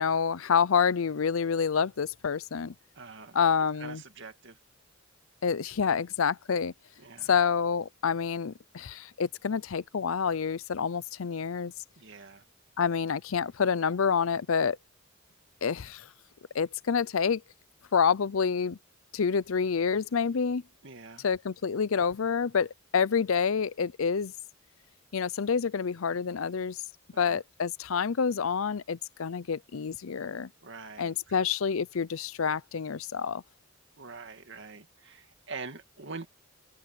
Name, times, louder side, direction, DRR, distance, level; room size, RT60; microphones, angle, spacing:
voice 1, 0.0-2.7 3.3-4.0 5.4-6.7 7.2-11.7 12.8-14.8 15.6-16.1 16.5-17.4 17.9-18.8 19.1-20.6 21.2-24.3 25.1-26.8 27.2-30.5 31.0-33.4, left 6 dB, 80° left, 0.6 m, -28 dB
voice 2, 3.0-3.4 3.8-4.6 7.0-7.3 12.0-12.4 20.8-21.3 27.1-27.4 30.6-31.4 34.0-36.3, right 4 dB, 60° right, 2.3 m, -44 dB
open air
head